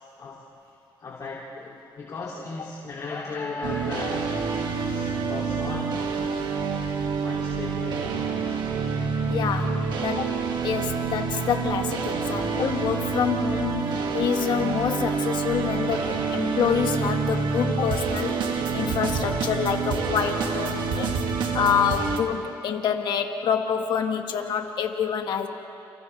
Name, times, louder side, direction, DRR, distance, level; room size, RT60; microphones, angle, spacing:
voice 1, 1.0-5.9 7.2-8.7 12.3-12.7 18.5-18.6, left 3 dB, 45° left, -4 dB, 2.7 m, -37 dB
sound 1, 3.6-22.2, right 5 dB, 70° right, 2.0 m, -27 dB
voice 2, 9.3-10.4 10.6-21.1 21.5-25.5, left 7 dB, 65° left, 4 dB, 1.7 m, -27 dB
30.0 x 29.0 x 3.3 m, 2.7 s
cardioid pair, 105°, 8 cm